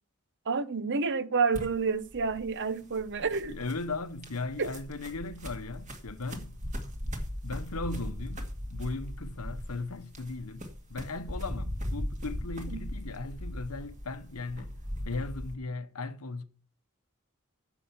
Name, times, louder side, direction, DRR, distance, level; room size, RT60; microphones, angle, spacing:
voice 1, 0.5-3.6 4.6-4.7 12.7-12.8, right 4 dB, 55° right, 0.8 m, -29 dB
sound 1, 1.5-15.5, equal, 35° right, 2.1 m, -39 dB
voice 2, 3.5-6.6 7.4-14.8 15.0-16.4, left 3 dB, 85° left, 1.1 m, -37 dB
10.0 x 7.2 x 7.1 m
head